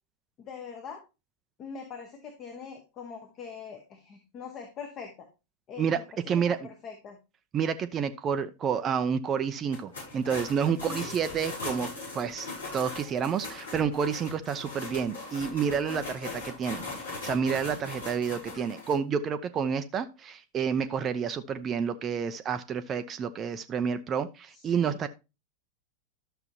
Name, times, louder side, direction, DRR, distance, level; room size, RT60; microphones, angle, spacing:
voice 1, 0.4-1.0 1.6-5.3 5.7-7.2 10.7-11.1 15.9-16.0 24.5-25.0, left 6 dB, 30° left, 4 dB, 1.6 m, -43 dB
voice 2, 6.3-6.6 7.5-12.5 12.7-16.8 17.2-25.1, right 7 dB, 25° right, 10 dB, 0.6 m, -29 dB
sound 1, 9.7-18.9, left 3 dB, 75° left, 6.1 m, -39 dB
12.0 x 6.7 x 2.9 m, 0.28 s
figure-of-eight pair, 90°, 0 cm